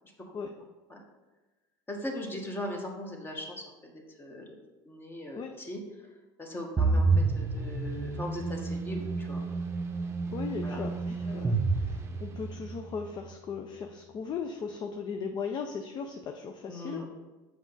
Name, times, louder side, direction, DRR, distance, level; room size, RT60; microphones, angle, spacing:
voice 1, 1.9-4.6 4.8-5.8 6.4-7.1 7.3-9.4 10.6-10.8 16.7-17.0, left 1 dB, 20° left, 1 dB, 1.3 m, -39 dB
sound 1, 6.8-12.7, right 3 dB, 25° right, 0.7 m, -29 dB
voice 2, 10.3-17.0, left 5 dB, 40° left, 5 dB, 0.5 m, -37 dB
6.1 x 4.8 x 4.0 m, 1.2 s
supercardioid pair, 100°, 11 cm